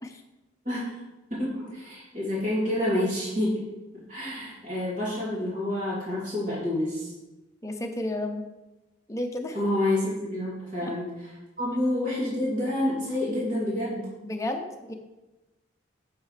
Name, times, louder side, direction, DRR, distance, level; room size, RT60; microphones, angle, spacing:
voice 1, 0.6-1.0 1.3-3.6 4.1-7.1 9.5-11.1 11.6-14.1, left 1 dB, 40° right, -8 dB, 2.8 m, -28 dB
voice 2, 7.6-8.4 9.1-9.6 10.8-10.9 14.2-14.9, left 1 dB, 15° left, 3 dB, 0.6 m, -32 dB
8.2 x 6.5 x 3.3 m, 1.0 s
head